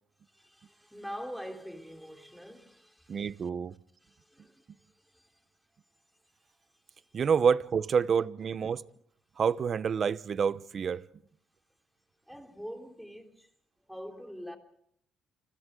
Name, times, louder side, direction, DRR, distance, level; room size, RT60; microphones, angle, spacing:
voice 1, 0.3-3.5 4.0-5.4 6.1-6.2 6.6-7.2 12.3-13.5 13.9-14.6, equal, ahead, 3.6 m, -45 dB
voice 2, 3.1-3.7 7.1-8.8 9.4-11.0, right 6 dB, 45° right, 0.8 m, -28 dB
30.0 x 25.5 x 3.8 m
cardioid pair, 110°, 0 cm